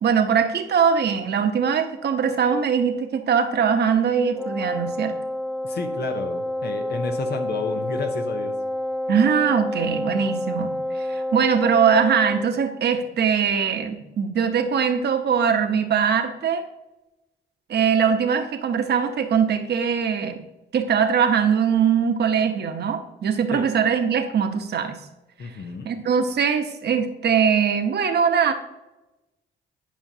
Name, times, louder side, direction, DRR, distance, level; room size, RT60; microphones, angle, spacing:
voice 1, 0.0-5.1 9.1-16.6 17.7-20.4 20.7-24.9 25.8-28.5, right 7 dB, 55° right, 6 dB, 1.0 m, -21 dB
Wind instrument woodwind instrument, 4.3-12.5, left 1 dB, ahead, 0.4 m, -28 dB
voice 2, 5.6-8.5 23.5-23.7 25.4-25.9, left 4 dB, 55° left, 5 dB, 0.8 m, -31 dB
10.0 x 5.3 x 2.8 m, 0.99 s
cardioid pair, 90°, 20 cm